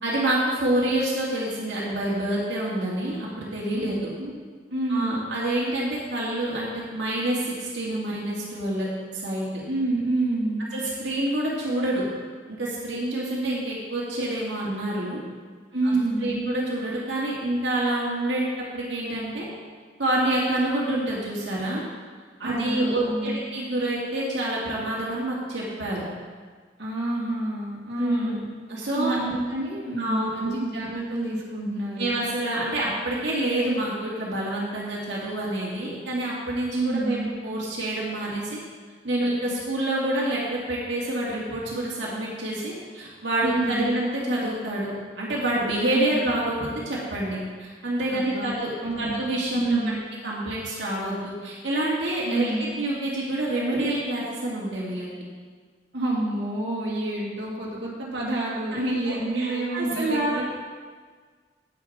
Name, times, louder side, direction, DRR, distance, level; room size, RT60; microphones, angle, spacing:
voice 1, 0.0-4.1 4.9-8.9 9.1-9.5 10.7-12.0 12.6-15.2 15.8-16.0 16.2-18.4 18.7-19.5 20.0-21.8 22.4-26.1 28.0-29.2 30.0-30.5 32.0-38.6 39.0-48.7 49.0-49.9 50.2-55.1 58.7-60.4, right 1 dB, 85° right, -6 dB, 2.1 m, -27 dB
voice 2, 4.7-5.2 9.7-10.7 15.7-16.4 22.4-23.4 26.8-28.5 28.9-32.1 36.7-37.3 43.4-44.0 45.8-46.2 48.1-48.5 48.8-49.2 49.5-50.0 52.2-52.8 55.9-60.4, right 2 dB, 70° right, -5 dB, 2.2 m, -28 dB
9.2 x 8.9 x 4.2 m, 1.6 s
head